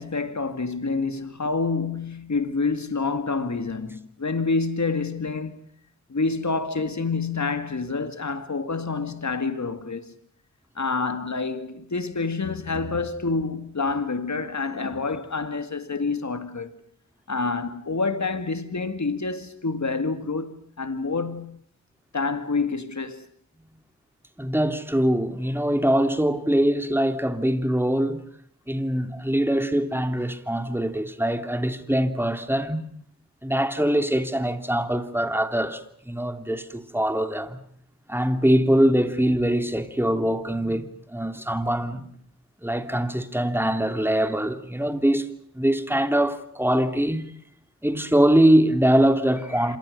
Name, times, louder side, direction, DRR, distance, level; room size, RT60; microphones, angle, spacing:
voice 1, 0.0-5.6 6.1-10.2 10.8-16.7 17.3-21.6 22.1-23.3 49.6-49.8, left 4 dB, 70° left, 2.1 m, -28 dB
voice 2, 24.4-28.2 28.7-32.9 33.4-37.6 38.1-42.0 42.6-45.3 45.5-47.2 47.8-49.8, right 1 dB, 5° right, 2.8 m, -23 dB
28.5 x 27.0 x 6.6 m
wide cardioid pair, 55°, 29 cm